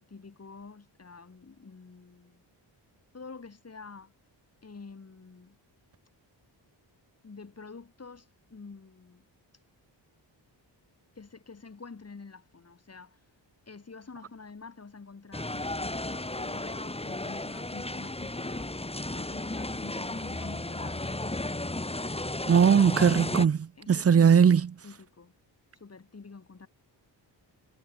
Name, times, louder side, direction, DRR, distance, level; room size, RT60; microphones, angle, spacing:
voice 1, 0.0-2.4 3.1-4.1 4.6-5.6 7.2-9.3 11.2-13.2 13.7-18.7 19.1-21.6 23.8-24.5 24.8-25.3 25.7-26.7, left 4 dB, 35° left, 6.9 m, -48 dB
sound 1, 15.3-23.5, left 2 dB, 15° left, 4.2 m, -34 dB
voice 2, 22.5-24.6, right 7 dB, 35° right, 0.7 m, -20 dB
wide cardioid pair, 125°, 44 cm